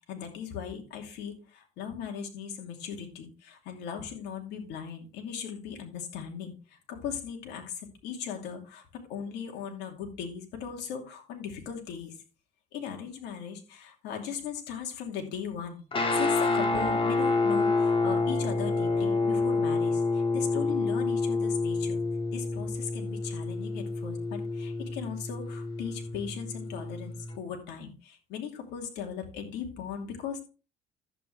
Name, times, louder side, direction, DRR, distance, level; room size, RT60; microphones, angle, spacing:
voice 1, 0.1-12.2 12.7-22.0 22.3-30.5, left 7 dB, 90° left, 3 dB, 2.6 m, -38 dB
Guitar, 15.9-27.4, left 3 dB, 30° left, 2.1 m, -28 dB
11.0 x 8.2 x 3.4 m, 0.32 s
cardioid pair, 110°, 17 cm